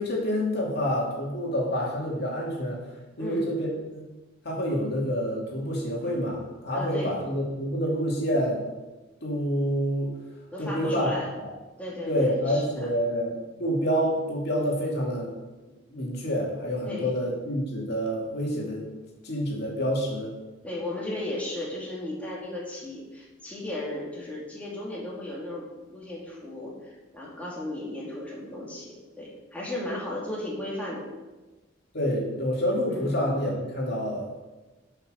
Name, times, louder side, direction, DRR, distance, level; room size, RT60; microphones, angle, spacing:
voice 1, 0.0-2.8 3.2-4.0 4.4-8.6 9.2-10.1 10.6-11.1 11.4-11.5 12.1-13.3 13.6-15.3 15.9-18.9 19.2-20.3 31.9-34.3, equal, 60° left, -3 dB, 2.7 m, -27 dB
voice 2, 3.2-3.5 6.7-7.2 10.5-11.3 11.8-12.9 16.9-17.2 20.6-31.1 32.9-33.2, left 1 dB, 10° left, -6 dB, 2.6 m, -35 dB
11.0 x 5.8 x 6.4 m, 1.2 s
head